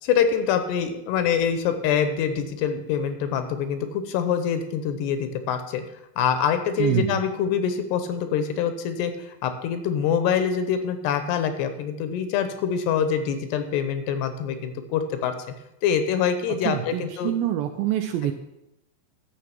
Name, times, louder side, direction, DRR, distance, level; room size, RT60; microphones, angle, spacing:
voice 1, 0.0-5.8 6.2-15.3 15.8-17.3, left 8 dB, 80° left, 9 dB, 3.1 m, -25 dB
voice 2, 6.8-7.2 16.6-18.3, right 11 dB, 80° right, 6 dB, 2.2 m, -25 dB
11.5 x 7.4 x 5.9 m, 0.89 s
omnidirectional pair, 4.8 m